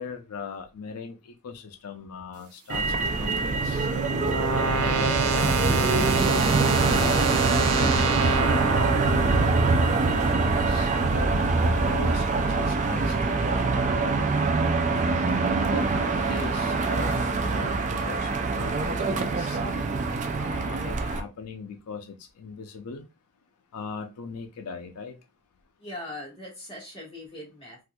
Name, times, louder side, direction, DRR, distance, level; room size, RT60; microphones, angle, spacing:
voice 1, 0.0-3.9 4.5-6.5 6.8-7.2 7.5-10.1 10.7-14.3 15.7-19.8 20.4-23.0 23.7-25.1, left 4 dB, 90° left, 6 dB, 0.5 m, -39 dB
Motor vehicle (road), 2.7-21.2, right 3 dB, 35° right, 0.3 m, -24 dB
sound 1, 2.9-10.1, right 4 dB, 80° right, 0.6 m, -27 dB
voice 2, 25.8-27.8, left 1 dB, 25° left, -4 dB, 1.5 m, -40 dB
4.2 x 2.4 x 2.2 m, 0.26 s
head